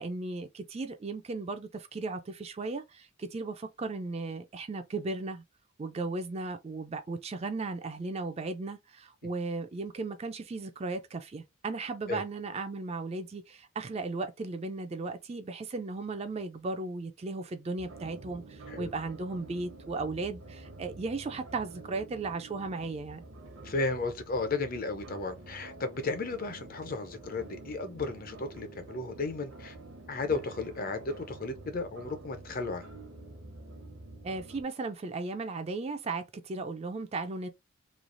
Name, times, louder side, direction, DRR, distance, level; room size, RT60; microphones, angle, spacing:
voice 1, 0.0-5.4 5.8-23.2 34.2-37.5, right 3 dB, 30° right, 0.3 m, -36 dB
sound 1, 17.8-34.6, right 2 dB, 75° right, 0.9 m, -48 dB
voice 2, 23.6-29.8 30.1-32.8, left 3 dB, 40° left, 0.5 m, -34 dB
3.1 x 2.3 x 2.5 m
head